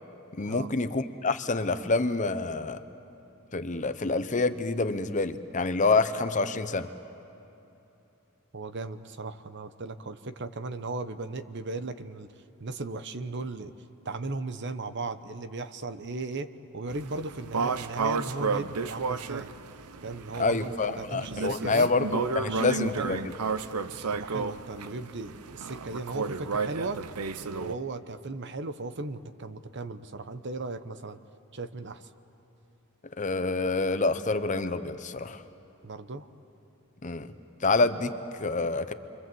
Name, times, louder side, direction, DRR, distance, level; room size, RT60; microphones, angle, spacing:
voice 1, 0.4-2.8 3.5-6.9 20.4-23.2 33.2-35.4 37.0-37.3 37.6-38.9, left 3 dB, 35° left, 10 dB, 0.8 m, -27 dB
voice 2, 8.5-12.3 12.6-13.7 14.0-19.5 20.0-21.9 22.4-23.2 23.9-27.0 27.4-31.2 31.5-32.1 35.8-36.3, right 3 dB, 50° right, 11 dB, 0.9 m, -37 dB
sound 1, 16.9-27.8, right 4 dB, 90° right, 0.7 m, -32 dB
29.5 x 24.5 x 7.8 m, 2.9 s
head